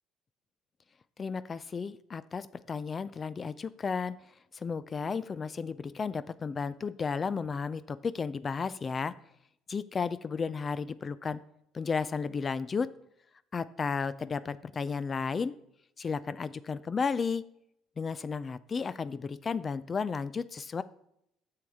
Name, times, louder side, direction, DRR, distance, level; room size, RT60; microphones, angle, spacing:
voice 1, 1.2-4.2 4.5-9.1 9.7-11.4 11.7-12.9 13.5-15.5 16.0-17.4 18.0-20.8, left 5 dB, 35° left, 16 dB, 0.3 m, -33 dB
7.4 x 6.3 x 3.6 m, 0.77 s
cardioid pair, 95°, 0 cm